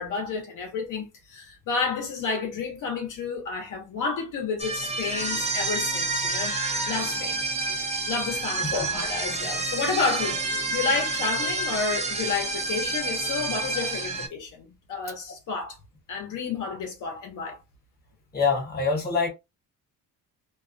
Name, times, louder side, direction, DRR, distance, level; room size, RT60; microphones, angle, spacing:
voice 1, 0.0-6.5 6.9-7.4 8.1-15.8 16.1-17.6, left 4 dB, 60° left, 0.8 m, -30 dB
sound 1, 4.6-14.3, right 2 dB, 20° right, 0.4 m, -29 dB
voice 2, 18.3-19.3, left 5 dB, 25° left, 0.8 m, -24 dB
2.3 x 2.1 x 2.4 m
cardioid pair, 145°, 35 cm